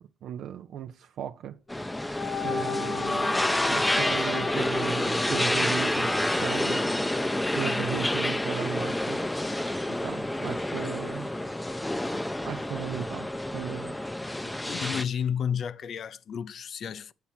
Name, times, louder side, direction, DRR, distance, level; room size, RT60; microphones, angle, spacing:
voice 1, 0.0-1.6 2.4-6.8 7.2-7.3 7.6-9.3 10.0-11.3 12.4-14.0, right 10 dB, 75° right, 0.5 m, -36 dB
sound 1, 1.7-7.2, left 4 dB, 30° left, 1.0 m, -34 dB
sound 2, 1.7-15.0, left 1 dB, 10° left, 0.6 m, -29 dB
voice 2, 14.4-17.1, left 8 dB, 60° left, 0.6 m, -32 dB
8.3 x 4.4 x 7.2 m
cardioid pair, 90°, 0 cm